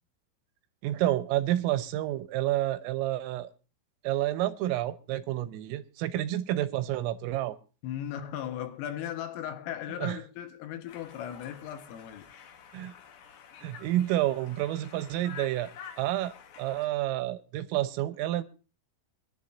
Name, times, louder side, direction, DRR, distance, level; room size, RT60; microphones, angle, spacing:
voice 1, 0.8-3.5 4.1-7.6 10.0-10.2 12.7-12.9 13.6-15.7 16.0-18.4, right 14 dB, 90° right, 3.5 m, -29 dB
voice 2, 7.8-12.3, left 10 dB, 85° left, 3.9 m, -37 dB
Conversation, 10.9-16.9, left 7 dB, 65° left, 2.7 m, -49 dB
25.0 x 11.0 x 2.7 m
omnidirectional pair, 5.8 m